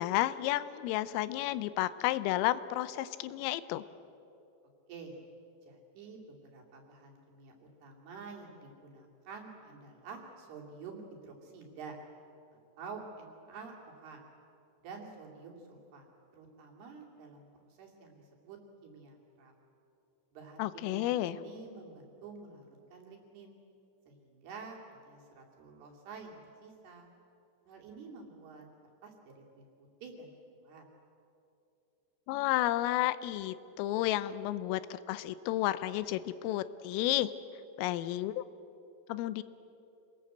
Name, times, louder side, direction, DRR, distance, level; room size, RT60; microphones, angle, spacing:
voice 1, 0.0-3.8 20.6-21.4 32.3-37.3 37.8-38.4 39.1-39.4, left 14 dB, 85° left, 15 dB, 3.3 m, -31 dB
voice 2, 4.9-5.2 5.6-12.0 12.8-14.2 14.8-16.1 16.3-19.5 20.3-23.6 24.1-27.1 27.7-28.7 29.0-30.8, right 4 dB, 55° right, -1 dB, 4.3 m, -49 dB
27.0 x 20.0 x 7.9 m, 2.8 s
omnidirectional pair, 5.9 m